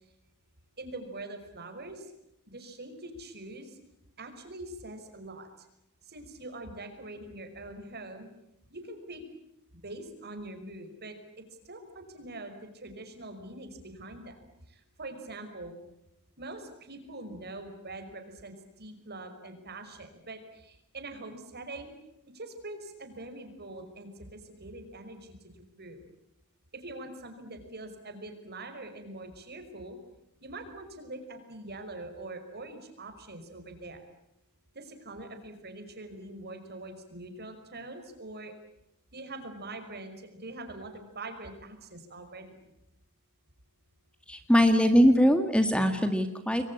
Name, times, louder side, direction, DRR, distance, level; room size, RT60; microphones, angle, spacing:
voice 1, 0.8-2.1 2.5-3.8 4.2-5.5 6.0-8.3 8.7-9.2 9.8-11.2 11.6-14.4 14.7-15.8 16.4-21.9 22.3-26.0 26.7-30.0 30.4-34.0 34.7-38.5 39.1-42.5, right 2 dB, 50° right, 7 dB, 5.5 m, -43 dB
voice 2, 44.3-46.6, equal, 5° left, 7 dB, 1.9 m, -22 dB
29.0 x 22.5 x 8.8 m, 0.84 s
head